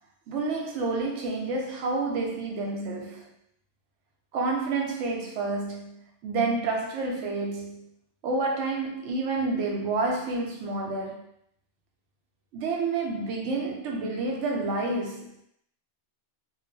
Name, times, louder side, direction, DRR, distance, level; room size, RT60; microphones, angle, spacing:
voice 1, 0.3-3.3 4.3-7.9 8.2-11.2 12.5-15.4, right 3 dB, 90° right, 0.9 m, -29 dB
2.4 x 2.2 x 2.6 m
omnidirectional pair, 1.2 m